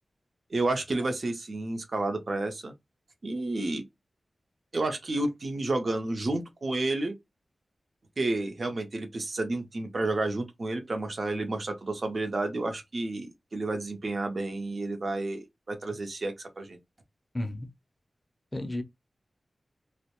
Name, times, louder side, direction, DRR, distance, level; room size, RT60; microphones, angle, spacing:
voice 1, 0.5-2.7 3.2-3.8 4.7-7.1 8.2-16.8, right 2 dB, 50° right, 0.5 m, -31 dB
voice 2, 17.3-17.7 18.5-18.8, left 1 dB, 20° left, 0.4 m, -32 dB
2.2 x 2.0 x 2.8 m
wide cardioid pair, 95°, 0 cm